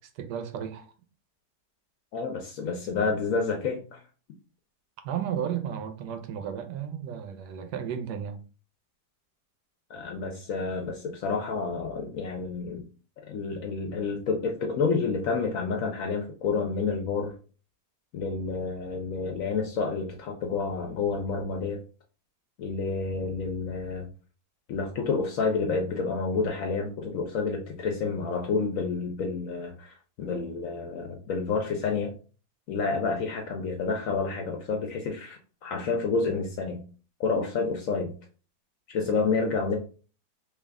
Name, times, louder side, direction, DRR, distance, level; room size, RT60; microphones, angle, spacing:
voice 1, 0.2-0.9 5.0-8.4, right 8 dB, 80° right, 1.1 m, -33 dB
voice 2, 2.1-4.0 9.9-12.8 13.3-17.3 18.1-21.8 22.6-24.1 24.7-32.1 32.7-36.8 37.2-38.1 38.9-39.8, left 4 dB, 70° left, 0.8 m, -29 dB
3.2 x 2.3 x 3.4 m
omnidirectional pair, 1.8 m